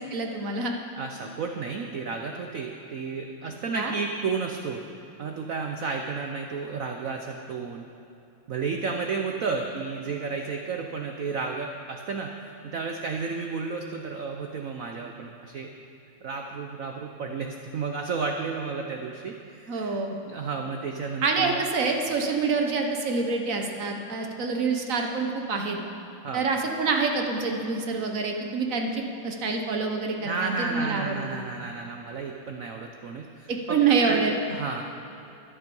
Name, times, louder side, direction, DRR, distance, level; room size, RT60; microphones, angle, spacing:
voice 1, 0.1-0.7 3.4-3.9 19.7-20.2 21.2-25.8 26.3-31.4 33.5-34.4, right 4 dB, 50° right, 3 dB, 1.1 m, -27 dB
voice 2, 1.0-4.8 5.2-7.9 8.5-12.3 12.6-15.7 16.2-20.0 20.3-21.6 26.2-26.4 30.2-33.8 34.0-34.8, right 4 dB, 90° right, 3 dB, 0.7 m, -32 dB
12.5 x 11.0 x 5.4 m, 2.7 s
omnidirectional pair, 2.3 m